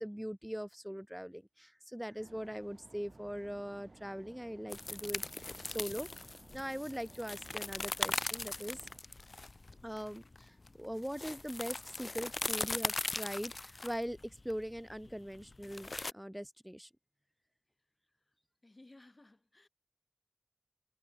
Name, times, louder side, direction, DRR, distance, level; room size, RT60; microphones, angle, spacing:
voice 1, 0.0-6.3 6.5-8.9 9.8-16.9, equal, 5° right, 0.5 m, -41 dB
sound 1, 2.2-9.0, right 2 dB, 65° right, 2.7 m, -58 dB
sound 2, 4.7-16.1, left 2 dB, 75° left, 0.4 m, -40 dB
voice 2, 18.6-19.7, left 2 dB, 50° left, 6.9 m, -58 dB
wide cardioid pair, 50°, 0 cm